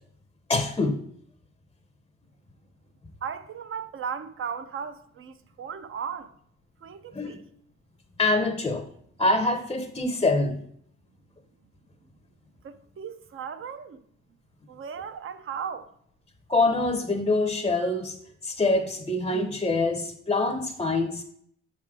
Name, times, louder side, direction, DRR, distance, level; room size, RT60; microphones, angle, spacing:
voice 1, 0.5-1.0 7.1-7.4 8.2-8.9 9.2-10.6 16.5-18.2 18.4-21.2, left 2 dB, 15° left, 0.6 m, -25 dB
voice 2, 3.2-6.3 6.8-7.5 12.6-14.0 14.7-15.9, right 7 dB, 45° right, 0.6 m, -36 dB
6.5 x 3.7 x 4.6 m
cardioid pair, 90°, 30 cm